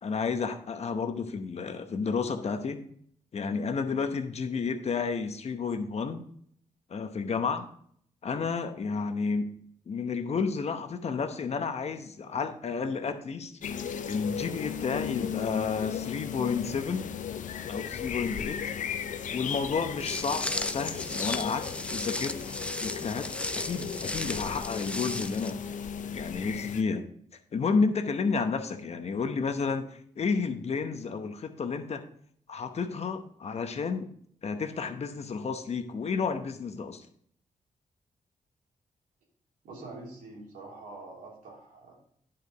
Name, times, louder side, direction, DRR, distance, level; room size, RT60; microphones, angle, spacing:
voice 1, 0.0-2.8 3.3-6.2 6.9-7.7 8.2-9.5 9.9-13.5 14.1-17.1 17.7-18.6 19.3-22.4 22.8-25.6 26.1-27.1 27.5-32.0 32.5-34.1 34.4-37.1, left 5 dB, 50° left, 8 dB, 0.9 m, -31 dB
sound 1, 13.6-26.8, left 8 dB, 70° left, 0.6 m, -36 dB
Walk footsteps, 20.0-25.5, left 1 dB, 10° left, 0.6 m, -35 dB
voice 2, 39.6-41.9, right 2 dB, 90° right, -2 dB, 2.9 m, -45 dB
10.5 x 5.5 x 3.9 m, 0.63 s
cardioid pair, 85°, 14 cm